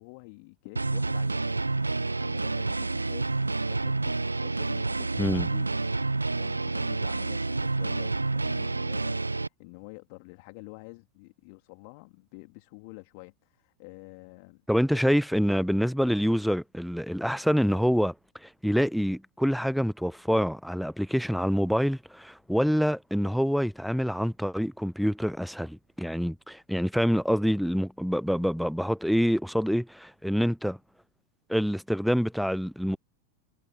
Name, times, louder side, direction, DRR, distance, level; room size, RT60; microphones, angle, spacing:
voice 1, 0.0-15.0, left 32 dB, 45° left, 3.6 m, -48 dB
sound 1, 0.8-9.5, right 3 dB, 80° right, 0.8 m, -29 dB
voice 2, 14.7-18.1 18.4-30.8 31.5-33.0, equal, ahead, 0.7 m, -26 dB
figure-of-eight pair, 90°, 0 cm